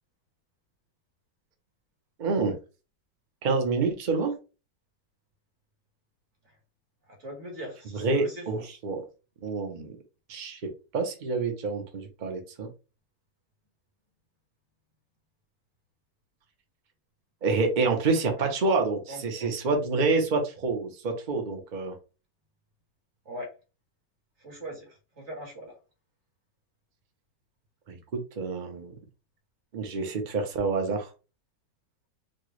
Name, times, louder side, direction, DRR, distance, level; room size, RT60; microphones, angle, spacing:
voice 1, 2.2-2.5 3.4-4.3 8.0-9.0 9.4-9.9 10.3-10.6 10.9-12.7 17.4-21.9 27.9-28.9 29.7-31.1, right 3 dB, 85° right, 0.4 m, -27 dB
voice 2, 7.1-8.6 18.4-18.5 19.1-19.5 23.2-23.5 24.4-25.8, equal, 40° right, 1.6 m, -41 dB
4.3 x 2.1 x 3.0 m
omnidirectional pair, 1.9 m